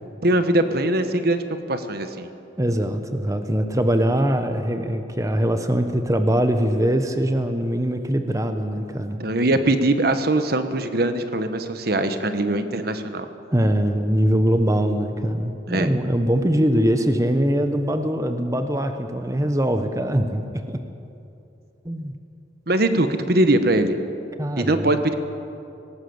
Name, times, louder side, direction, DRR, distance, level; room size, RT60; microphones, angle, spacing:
voice 1, 0.2-1.4 1.7-2.3 9.2-13.3 15.7-15.9 22.7-24.0 24.6-25.1, right 1 dB, 55° right, 9 dB, 1.2 m, -21 dB
voice 2, 2.6-9.2 13.5-20.8 21.8-22.1 24.4-24.9, equal, 20° right, 7 dB, 1.0 m, -22 dB
19.0 x 18.5 x 8.0 m, 2.7 s
head